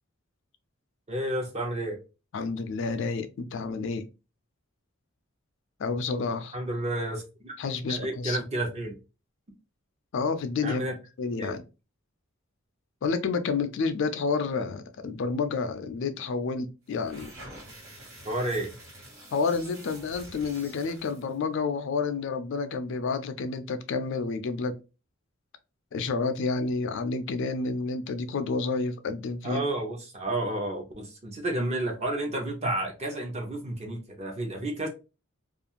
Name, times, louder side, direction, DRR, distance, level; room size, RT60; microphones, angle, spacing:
voice 1, 1.1-2.0 6.5-7.5 7.9-9.0 10.6-10.9 11.4-11.6 18.2-18.8 29.4-34.9, right 1 dB, 30° right, 1 dB, 0.7 m, -31 dB
voice 2, 2.3-4.0 5.8-6.5 7.6-8.4 10.1-11.6 13.0-17.3 19.3-24.7 25.9-29.6, left 4 dB, 60° left, 9 dB, 0.4 m, -30 dB
sound 1, 16.9-21.3, right 1 dB, 80° right, 1.4 m, -47 dB
2.5 x 2.4 x 2.8 m, 0.29 s
head